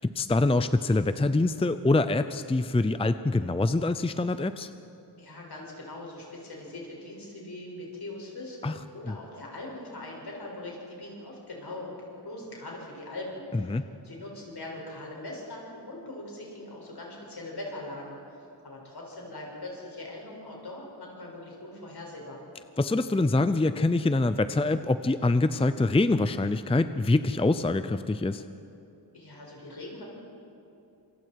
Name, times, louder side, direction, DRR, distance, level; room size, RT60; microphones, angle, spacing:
voice 1, 0.0-4.7 8.6-8.7 9.1-9.2 13.5-13.8 22.8-28.4, left 2 dB, 15° left, 11 dB, 0.6 m, -25 dB
voice 2, 5.2-18.4 18.6-22.4 29.1-30.0, left 2 dB, 65° left, -2 dB, 6.7 m, -41 dB
27.0 x 24.5 x 4.8 m, 2.8 s
wide cardioid pair, 85°, 42 cm